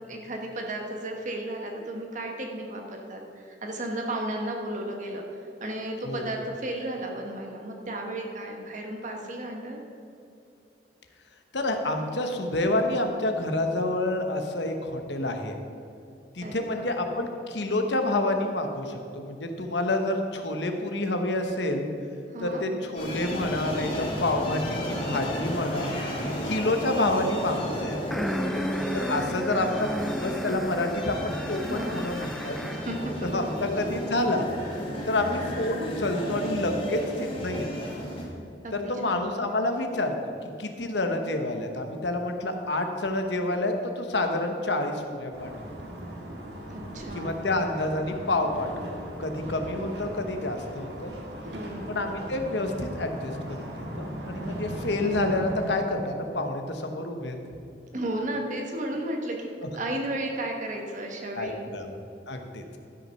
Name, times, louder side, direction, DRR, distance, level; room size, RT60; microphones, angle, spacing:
voice 1, 0.1-5.2 5.6-9.8 16.4-16.8 22.3-22.6 31.6-32.0 32.7-33.6 38.6-39.3 46.7-47.4 51.5-52.0 57.9-59.5 59.7-61.7, right 1 dB, 45° right, 1 dB, 1.2 m, -34 dB
voice 2, 11.5-15.6 16.3-21.9 22.4-26.0 26.4-28.2 28.9-32.6 33.2-34.5 35.1-37.7 38.7-40.1 40.6-45.5 47.1-48.9 49.2-51.1 51.9-57.4 61.4-61.9 62.3-62.8, left 2 dB, 80° left, 5 dB, 1.2 m, -28 dB
sound 1, 22.9-38.2, equal, 35° left, 2.4 m, -33 dB
sound 2, 28.1-33.0, equal, ahead, 0.4 m, -33 dB
sound 3, 45.3-55.8, right 1 dB, 70° right, 1.7 m, -38 dB
12.5 x 6.2 x 5.8 m, 2.7 s
head